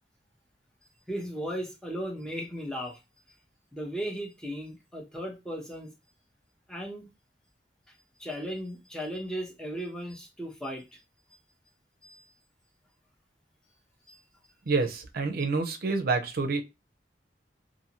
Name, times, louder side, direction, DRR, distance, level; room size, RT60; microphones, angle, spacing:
voice 1, 1.1-3.0 3.7-5.9 6.7-7.1 8.2-10.8 12.0-12.2 14.1-14.2, equal, 5° left, 0.7 m, -36 dB
voice 2, 14.7-16.6, right 4 dB, 55° right, 0.5 m, -28 dB
2.6 x 2.6 x 2.8 m
head